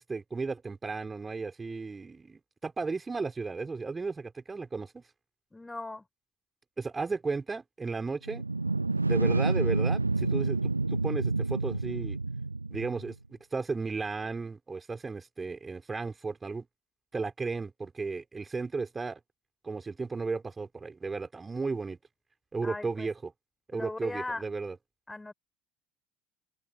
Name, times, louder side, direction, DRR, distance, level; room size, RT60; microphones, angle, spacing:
voice 1, 0.0-5.0 6.8-8.4 9.1-12.2 12.7-16.7 17.1-19.2 19.6-22.0 22.5-23.3 23.7-24.8, right 4 dB, 20° right, 3.8 m, -34 dB
voice 2, 5.5-6.0 22.6-23.1 23.7-24.4 25.1-25.3, left 2 dB, 10° left, 5.1 m, -38 dB
sound 1, 8.3-13.1, right 3 dB, 85° right, 0.8 m, -28 dB
figure-of-eight pair, 60°, 0 cm